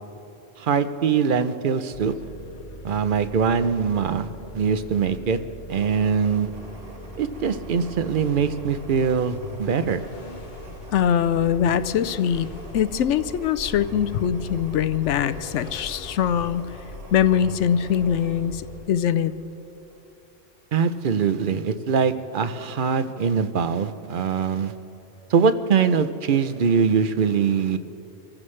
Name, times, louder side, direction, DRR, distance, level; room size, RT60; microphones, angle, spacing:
voice 1, 0.6-2.1 2.8-4.3 4.5-5.4 5.7-6.5 7.2-10.0 20.7-24.7 25.3-27.8, right 6 dB, 50° right, 11 dB, 0.7 m, -22 dB
sound 1, 1.9-18.9, left 2 dB, 45° left, 0.9 m, -41 dB
sound 2, 5.7-19.4 19.8-20.0, right 1 dB, 75° right, 2.2 m, -44 dB
voice 2, 10.9-12.5 12.7-16.6 17.1-19.3, left 9 dB, 75° left, 14 dB, 0.9 m, -22 dB
26.0 x 14.5 x 3.2 m, 2.8 s
omnidirectional pair, 1.3 m